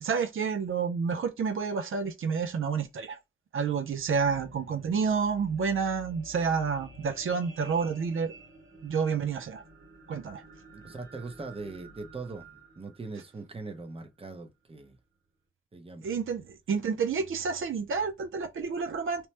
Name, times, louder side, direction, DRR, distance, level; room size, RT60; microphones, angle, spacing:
voice 1, 0.0-3.2 3.5-8.3 8.8-9.6 10.1-10.4 16.0-16.4 16.7-19.3, right 5 dB, 85° right, 0.4 m, -29 dB
sound 1, 3.9-14.2 14.8-14.9, right 1 dB, 60° right, 1.5 m, -52 dB
voice 2, 10.7-15.0 15.7-16.1, right 3 dB, 30° right, 0.6 m, -41 dB
2.9 x 2.0 x 3.1 m
wide cardioid pair, 105°, 20 cm